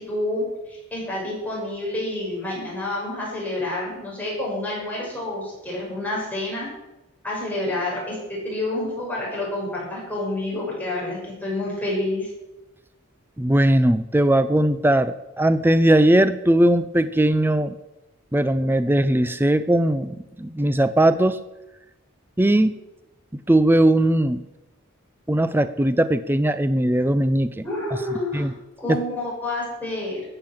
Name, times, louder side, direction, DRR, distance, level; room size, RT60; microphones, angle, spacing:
voice 1, 0.0-6.7 7.2-12.3 27.6-28.5 28.8-30.2, left 1 dB, 10° left, -5 dB, 6.4 m, -28 dB
voice 2, 13.4-17.8 18.3-21.4 22.4-22.7 23.5-24.4 25.3-27.6 28.3-28.5 28.9-29.0, right 1 dB, 10° right, 12 dB, 0.5 m, -19 dB
14.5 x 9.0 x 7.6 m, 0.97 s
head